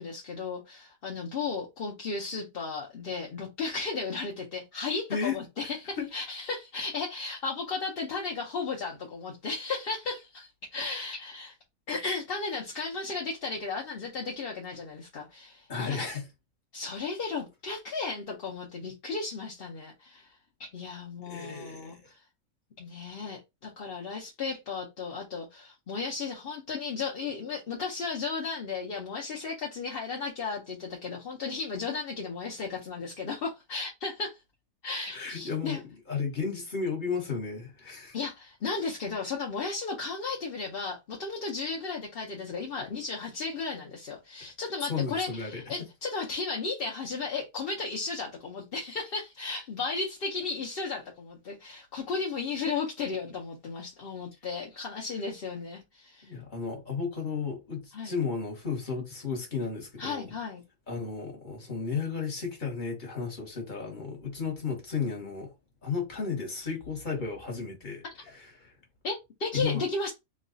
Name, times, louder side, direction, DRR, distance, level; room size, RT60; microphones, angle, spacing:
voice 1, 0.0-11.5 11.9-16.1 16.7-22.2 22.8-34.4 34.8-35.8 38.1-56.3 57.9-58.1 60.0-60.6 69.0-70.1, left 4 dB, 50° left, 0.8 m, -35 dB
voice 2, 15.7-16.2 21.3-22.0 35.1-35.8 36.1-38.2 44.9-45.6 56.2-60.3 60.9-65.5 65.8-68.0 68.6-68.7 69.5-69.8, left 5 dB, 35° left, 1.3 m, -33 dB
3.1 x 2.3 x 3.8 m
omnidirectional pair, 1.6 m